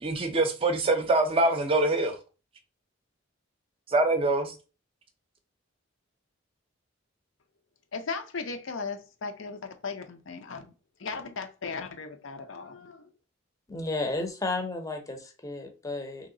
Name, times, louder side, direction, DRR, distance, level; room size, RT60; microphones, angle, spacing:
voice 1, 0.0-2.2 3.9-4.5, right 2 dB, 25° right, 0.5 m, -24 dB
voice 2, 7.9-10.7 11.0-13.1, left 4 dB, 75° left, 0.6 m, -37 dB
voice 3, 13.7-16.3, left 2 dB, 15° left, 0.6 m, -33 dB
3.1 x 2.9 x 3.7 m
head